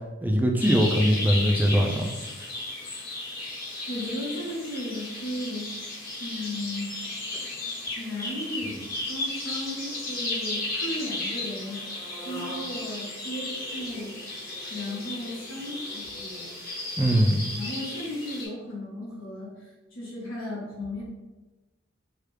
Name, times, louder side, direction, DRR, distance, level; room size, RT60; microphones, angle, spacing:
voice 1, 0.2-2.1 17.0-17.4, equal, 10° right, 2 dB, 0.4 m, -21 dB
sound 1, 0.6-18.4, left 2 dB, 50° left, 1.3 m, -34 dB
voice 2, 3.9-5.7 6.2-6.9 8.0-14.1 14.7-16.5 17.6-21.0, left 1 dB, 85° left, -7 dB, 1.3 m, -35 dB
4.7 x 2.3 x 3.2 m, 1.1 s
head